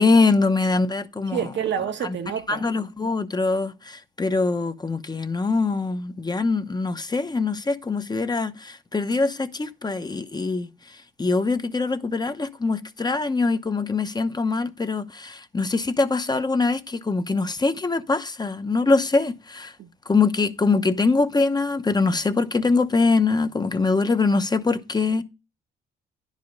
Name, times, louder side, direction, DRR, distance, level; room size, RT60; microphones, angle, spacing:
voice 1, 0.0-1.4 2.5-19.7 20.1-25.2, left 3 dB, 20° left, 0.8 m, -23 dB
voice 2, 1.3-2.7 19.8-19.9, right 8 dB, 65° right, 1.0 m, -28 dB
10.5 x 5.0 x 5.3 m
cardioid pair, 90°, 20 cm